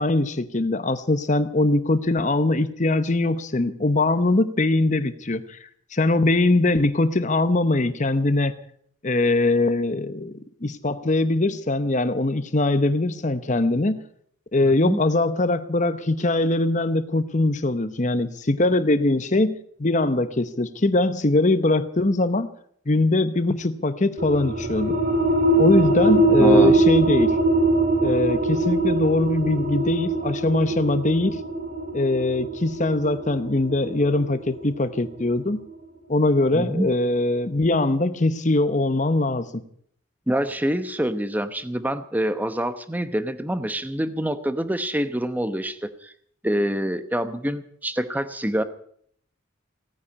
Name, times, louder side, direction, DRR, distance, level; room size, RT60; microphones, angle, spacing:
voice 1, 0.0-5.6 5.9-8.6 9.0-14.0 14.5-22.5 22.9-25.0 25.6-27.4 28.0-31.4 31.9-35.6 36.1-39.5, left 2 dB, 35° left, 12 dB, 0.8 m, -22 dB
sound 1, 24.2-35.4, right 2 dB, 45° right, 2.4 m, -22 dB
voice 2, 26.4-26.8 36.5-36.9 40.3-46.1 46.4-48.6, right 1 dB, 10° right, 11 dB, 0.9 m, -26 dB
17.5 x 9.8 x 8.6 m, 0.62 s
head